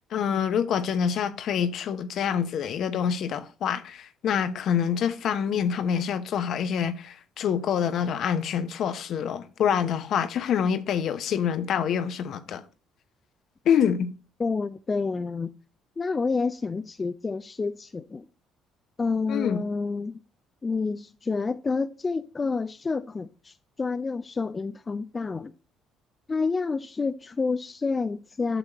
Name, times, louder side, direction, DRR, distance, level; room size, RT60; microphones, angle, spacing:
voice 1, 0.1-12.6 13.6-14.1 19.3-19.6, left 8 dB, 60° left, 0.8 m, -26 dB
voice 2, 14.4-15.5 16.0-18.3 19.0-20.2 20.6-25.5 26.3-28.6, left 4 dB, 30° left, 0.5 m, -29 dB
9.0 x 6.2 x 2.9 m
hypercardioid pair, 60°, 0 cm